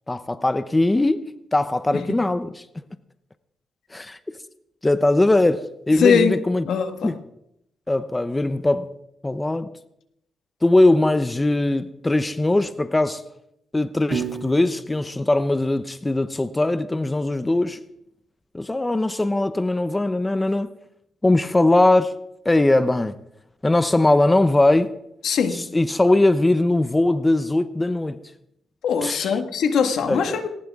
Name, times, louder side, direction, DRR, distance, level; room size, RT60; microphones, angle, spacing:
voice 1, 0.1-2.8 3.9-4.2 4.8-6.7 7.0-7.2 7.9-8.9 9.2-9.7 10.6-13.2 13.7-17.8 18.5-20.7 21.2-22.2 22.4-23.1 23.6-24.9 25.5-28.2 29.0-29.3 30.1-30.5, left 2 dB, 15° left, 0.7 m, -20 dB
voice 2, 6.0-6.3 6.6-7.1 25.2-25.6 28.8-30.5, left 6 dB, 80° left, 1.7 m, -21 dB
Piano, 14.1-16.3, right 8 dB, 75° right, 2.6 m, -34 dB
18.5 x 18.5 x 3.6 m
cardioid pair, 100°, 0 cm